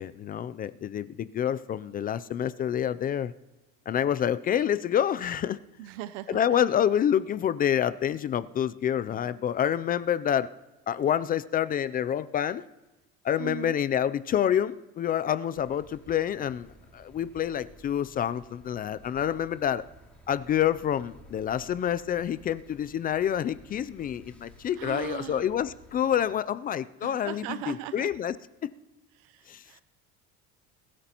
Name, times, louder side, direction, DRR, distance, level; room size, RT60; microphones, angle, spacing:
voice 1, 0.0-3.3 3.9-5.6 6.3-10.5 10.9-12.6 13.2-19.9 20.3-28.4 29.5-29.6, left 9 dB, 30° left, 15 dB, 0.4 m, -27 dB
voice 2, 5.8-6.6 13.4-13.8 24.7-25.5 27.0-28.1 29.2-29.8, right 13 dB, 80° right, 14 dB, 0.6 m, -39 dB
sound 1, 15.5-26.2, equal, 5° left, 2.4 m, -54 dB
21.5 x 13.0 x 2.9 m, 1.1 s
cardioid pair, 120°, 31 cm